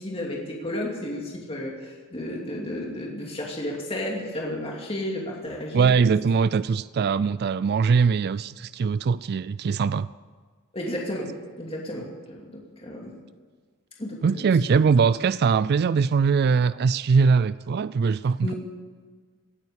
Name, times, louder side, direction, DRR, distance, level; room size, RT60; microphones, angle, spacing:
voice 1, 0.0-6.0 10.7-11.3 11.6-12.5 12.8-13.1 14.0-14.5 18.4-18.6, left 1 dB, 25° left, -2 dB, 2.6 m, -32 dB
voice 2, 5.7-10.1 14.2-18.5, right 5 dB, 45° right, 16 dB, 0.3 m, -21 dB
18.0 x 8.8 x 8.2 m, 1.5 s
head